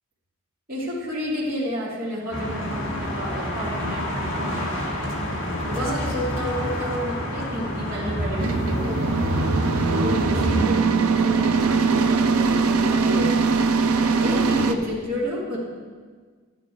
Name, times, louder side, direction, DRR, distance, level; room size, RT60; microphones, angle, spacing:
voice 1, 0.7-5.1 5.4-9.4 10.0-10.7 11.1-13.5 14.0-15.6, equal, 40° right, -7 dB, 2.5 m, -30 dB
sound 1, 2.3-10.7, equal, 60° left, 1.7 m, -28 dB
sound 2, 8.4-14.7, right 4 dB, 75° right, 0.7 m, -21 dB
11.0 x 9.0 x 4.6 m, 1.5 s
head